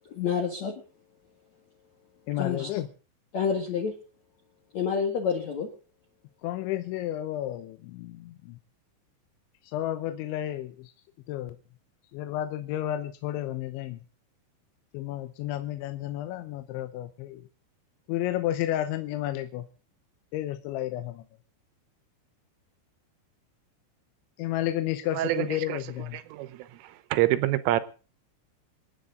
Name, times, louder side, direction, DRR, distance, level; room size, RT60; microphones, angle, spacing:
voice 1, 0.1-0.7 2.4-2.8 3.3-3.9 4.7-5.7, left 6 dB, 55° left, 2.0 m, -28 dB
voice 2, 2.3-2.9 6.4-8.6 9.6-10.9 11.3-11.6 12.1-14.0 14.9-17.5 18.1-19.7 20.3-21.3 24.4-26.2, left 13 dB, 75° left, 2.9 m, -32 dB
voice 3, 25.1-25.9 26.4-26.7 27.1-27.8, right 15 dB, 80° right, 3.4 m, -26 dB
27.5 x 9.6 x 3.8 m
omnidirectional pair, 5.9 m